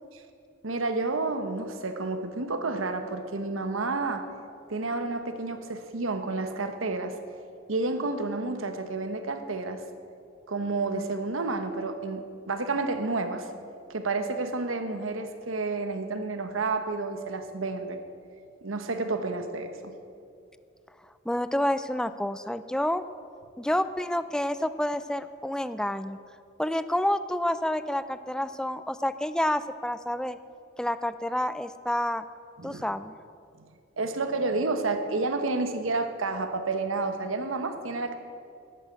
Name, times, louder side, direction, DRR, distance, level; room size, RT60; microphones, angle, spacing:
voice 1, 0.6-4.3 4.7-7.1 7.7-9.8 10.5-13.5 13.9-18.0 18.6-19.9 32.6-32.8 34.0-38.2, right 3 dB, 80° right, 8 dB, 1.1 m, -30 dB
voice 2, 21.3-23.0 23.6-26.2 26.6-30.4 30.8-32.2 32.6-33.1, left 1 dB, 5° left, 13 dB, 0.4 m, -29 dB
11.0 x 9.2 x 8.6 m, 2.5 s
head